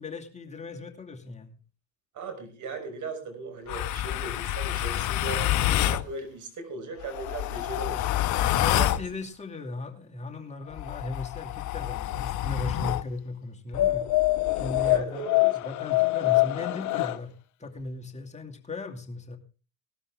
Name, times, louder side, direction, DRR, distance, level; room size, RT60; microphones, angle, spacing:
voice 1, 0.0-1.6 8.4-14.1 14.6-17.3 17.6-19.4, left 3 dB, 15° left, 2 dB, 2.5 m, -37 dB
voice 2, 2.1-5.4 5.9-8.1 8.4-9.0 14.8-15.5 16.1-16.2, right 4 dB, 45° right, 6 dB, 6.2 m, -38 dB
sound 1, 3.7-6.1 7.0-9.1 10.7-13.1 13.7-17.2, left 15 dB, 45° left, 0.9 m, -26 dB
19.0 x 12.5 x 3.7 m, 0.34 s
hypercardioid pair, 70°, 40 cm